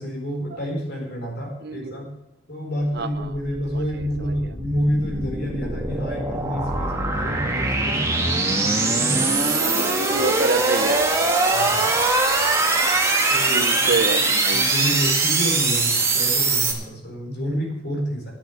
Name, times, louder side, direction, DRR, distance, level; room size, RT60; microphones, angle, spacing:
voice 1, 0.0-2.1 2.5-8.0 8.5-9.2 11.5-11.9 13.3-14.0 14.5-18.3, equal, 50° left, 1 dB, 4.4 m, -29 dB
voice 2, 1.6-2.1 2.9-3.4 3.7-4.1 9.5-11.0 13.4-14.6, right 3 dB, 50° right, 10 dB, 0.8 m, -27 dB
sound 1, 3.6-16.7, right 3 dB, 15° right, 1.7 m, -22 dB
11.0 x 8.1 x 8.3 m, 0.91 s
head